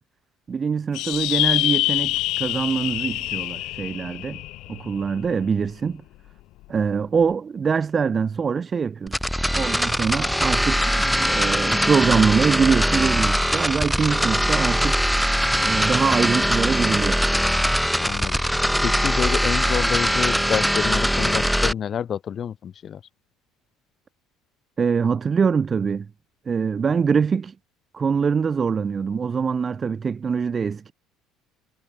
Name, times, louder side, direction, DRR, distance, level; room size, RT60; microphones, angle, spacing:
voice 1, 0.5-4.4 4.7-6.0 6.7-9.2 9.5-15.0 15.6-17.2 24.8-26.1 26.4-27.5 27.9-30.9, right 6 dB, 35° right, 3.2 m, -23 dB
sound 1, 0.9-5.7, left 18 dB, 60° left, 1.0 m, -26 dB
sound 2, 9.1-21.7, equal, ahead, 3.1 m, -21 dB
voice 2, 18.0-18.4 18.8-23.0, left 8 dB, 45° left, 7.5 m, -28 dB
hypercardioid pair, 60°, 0 cm